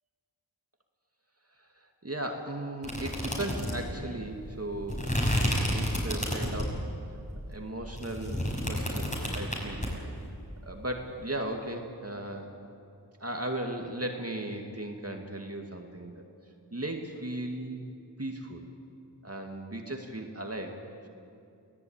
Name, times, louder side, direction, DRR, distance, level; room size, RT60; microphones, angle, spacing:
voice 1, 1.6-5.1 5.7-6.9 7.5-9.9 10.6-12.5 13.2-16.2 16.7-17.8 18.2-18.6 19.2-20.8, right 1 dB, 35° right, 3 dB, 2.2 m, -36 dB
sound 1, 2.8-6.8 7.3-9.9, equal, 20° left, 6.0 m, -30 dB
23.0 x 17.5 x 8.9 m, 2.6 s
wide cardioid pair, 55°, 41 cm